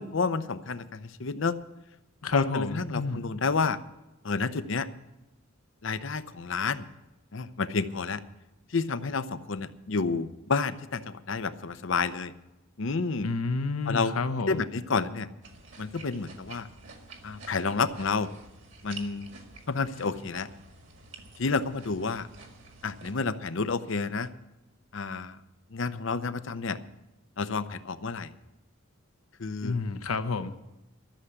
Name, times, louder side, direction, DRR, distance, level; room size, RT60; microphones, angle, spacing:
voice 1, 0.0-1.5 2.3-3.8 4.2-4.9 5.8-6.8 7.3-8.2 8.7-12.3 12.8-13.3 13.9-14.1 14.5-15.3 15.8-16.7 17.2-18.3 18.8-19.3 19.7-20.5 21.4-22.3 22.8-24.3 24.9-25.4 25.7-26.8 27.4-28.3 29.4-29.8, left 4 dB, 60° left, 13 dB, 0.7 m, -30 dB
voice 2, 2.2-3.2 13.2-14.6 29.6-30.5, left 4 dB, 90° left, 10 dB, 0.9 m, -30 dB
sound 1, 15.4-23.1, right 3 dB, 55° right, 2.0 m, -49 dB
13.0 x 7.1 x 9.6 m, 0.98 s
head